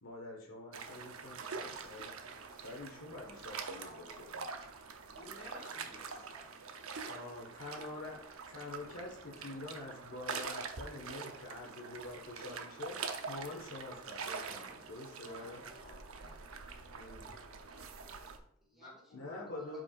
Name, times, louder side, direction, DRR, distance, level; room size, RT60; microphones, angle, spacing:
voice 1, 0.0-2.1 2.6-4.3 7.1-15.6 16.9-17.4 19.1-19.8, left 2 dB, 75° left, 0 dB, 1.5 m, -46 dB
sound 1, 0.7-18.4, right 5 dB, 80° right, 0.8 m, -45 dB
voice 2, 3.7-4.4 5.1-6.5 15.2-16.3 17.2-17.3 18.7-19.8, left 1 dB, 45° left, -3 dB, 3.1 m, -54 dB
voice 3, 15.4-16.8 17.2-17.4 17.6-19.1 19.6-19.8, left 1 dB, ahead, -3 dB, 1.9 m, -64 dB
11.5 x 4.9 x 2.5 m, 0.68 s
head